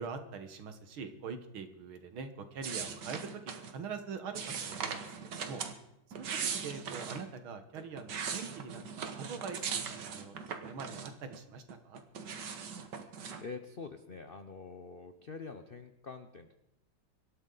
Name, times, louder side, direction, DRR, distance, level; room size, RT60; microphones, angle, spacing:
voice 1, 0.0-5.6 6.2-6.3 6.5-12.0, right 5 dB, 85° right, 8 dB, 2.2 m, -44 dB
sound 1, 2.6-3.7 4.4-5.7 6.1-7.2 7.8-11.4 11.7-13.4, right 6 dB, 60° right, 1.8 m, -39 dB
voice 2, 13.4-16.5, left 4 dB, 65° left, 8 dB, 0.5 m, -46 dB
24.5 x 13.0 x 4.0 m, 0.82 s
omnidirectional pair, 2.2 m